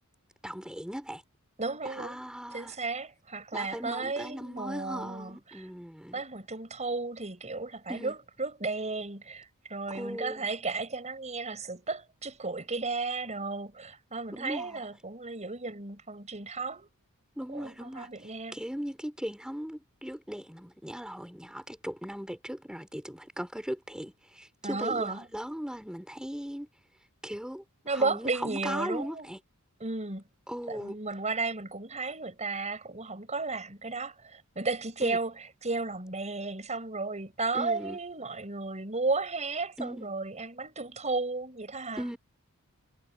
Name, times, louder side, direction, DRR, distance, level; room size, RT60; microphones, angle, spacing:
voice 1, 0.4-1.2 1.8-2.8 3.5-6.2 7.9-8.2 9.9-10.4 14.3-14.8 17.4-26.7 27.2-27.6 27.9-29.4 30.5-31.0 35.0-35.2 37.5-38.0 39.8-40.1 42.0-42.2, equal, 5° right, 4.9 m, -38 dB
voice 2, 1.6-2.2 2.5-5.6 6.1-16.9 17.5-18.6 24.6-25.3 27.8-29.3 29.8-30.2 30.7-35.3 35.6-42.0, right 3 dB, 30° right, 5.7 m, -34 dB
head